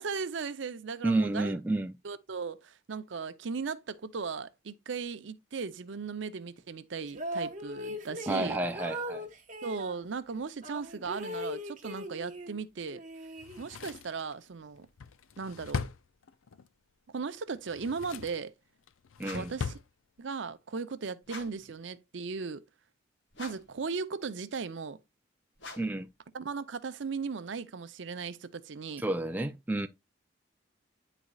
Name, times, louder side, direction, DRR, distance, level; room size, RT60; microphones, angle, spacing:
voice 1, 0.0-1.5 2.0-8.6 9.6-13.0 13.6-14.9 15.4-15.9 17.1-18.5 19.3-19.8 20.2-22.6 23.4-25.0 26.3-29.0, right 5 dB, 65° right, 0.6 m, -37 dB
voice 2, 1.0-1.9 8.3-9.3 19.2-19.5 25.8-26.1 29.0-29.9, right 2 dB, 10° right, 0.3 m, -30 dB
sound 1, 7.1-10.0 10.6-12.6 12.9-14.0, equal, 40° right, 1.0 m, -39 dB
Drawer open or close, 13.4-16.7 17.5-18.5 18.9-19.9 20.2-20.3, left 5 dB, 85° left, 0.5 m, -40 dB
sound 2, 19.2-19.7 21.2-21.7 23.3-23.8 25.6-26.1, left 2 dB, 60° left, 1.4 m, -46 dB
10.0 x 4.1 x 2.3 m
head